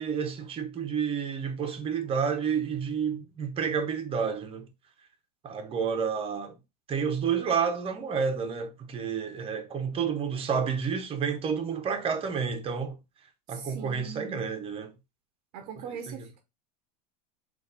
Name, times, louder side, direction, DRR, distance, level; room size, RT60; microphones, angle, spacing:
voice 1, 0.0-4.7 5.4-6.6 6.9-13.0 13.5-14.9 16.1-16.2, right 6 dB, 25° right, 1.0 m, -30 dB
voice 2, 13.5-14.5 15.5-16.4, right 7 dB, 55° right, 0.8 m, -41 dB
4.1 x 2.6 x 4.0 m
supercardioid pair, 115°, 20 cm